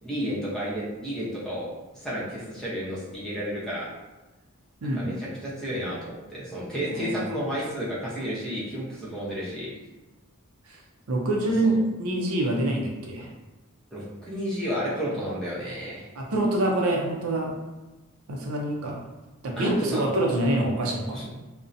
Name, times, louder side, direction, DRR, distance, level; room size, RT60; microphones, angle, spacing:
voice 1, 0.0-1.7 1.9-3.9 4.8-9.7 11.6-11.8 13.9-16.1 19.6-20.1 21.1-21.3, equal, 5° left, -8 dB, 0.7 m, -32 dB
voice 2, 4.8-5.3 6.9-7.3 10.7-10.8 11.1-13.3 16.2-17.6 18.3-19.0 19.4-21.2, right 1 dB, 75° right, 0 dB, 0.5 m, -26 dB
2.6 x 2.1 x 2.5 m, 1.1 s
head